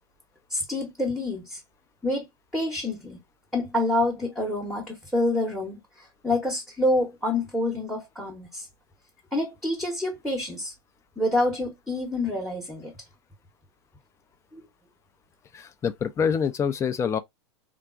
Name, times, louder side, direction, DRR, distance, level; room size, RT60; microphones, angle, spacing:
voice 1, 0.5-1.6 2.0-2.2 2.5-3.2 3.5-8.7 9.3-10.7 11.2-12.9 14.5-14.6, left 1 dB, ahead, 0.8 m, -27 dB
voice 2, 15.5-17.2, left 7 dB, 20° left, 0.4 m, -26 dB
3.5 x 2.2 x 2.4 m
hypercardioid pair, 105°, 14 cm